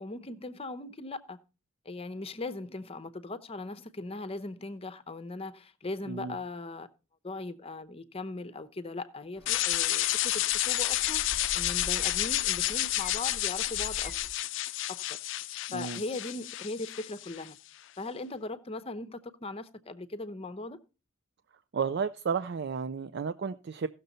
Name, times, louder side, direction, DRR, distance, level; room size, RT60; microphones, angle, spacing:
voice 1, 0.0-1.4 1.8-6.9 7.2-14.1 14.9-15.2 15.7-17.6 18.0-20.8, left 2 dB, 30° left, 0.7 m, -39 dB
sound 1, 9.4-14.3, left 1 dB, 5° right, 1.0 m, -46 dB
sound 2, 9.5-17.5, left 15 dB, 65° left, 0.4 m, -30 dB
voice 2, 15.7-16.0 21.7-23.9, right 6 dB, 55° right, 0.4 m, -32 dB
16.0 x 6.6 x 4.1 m
head